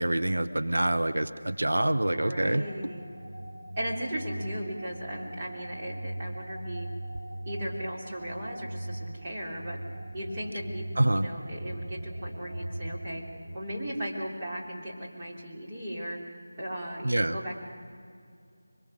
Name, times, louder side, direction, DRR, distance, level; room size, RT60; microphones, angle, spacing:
voice 1, 0.0-2.6 11.0-11.3 17.0-17.4, right 1 dB, 90° right, 10 dB, 1.0 m, -26 dB
sound 1, 1.6-13.6, right 1 dB, 60° right, 3.3 m, -40 dB
voice 2, 2.1-3.1 3.8-6.9 7.4-9.8 10.1-13.2 13.5-17.7, equal, 20° right, -5 dB, 3.2 m, -37 dB
24.5 x 22.5 x 6.6 m, 2.4 s
figure-of-eight pair, 170°, 0 cm